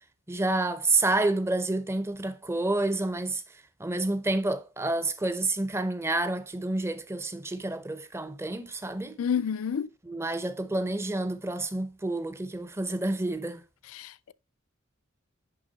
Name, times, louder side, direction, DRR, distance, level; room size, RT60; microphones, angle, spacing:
voice 1, 0.3-3.4 3.8-9.2 10.0-13.6, right 2 dB, 15° right, 0.6 m, -29 dB
voice 2, 9.2-9.9 13.9-14.3, left 7 dB, 90° left, 0.4 m, -29 dB
10.5 x 3.5 x 4.0 m
head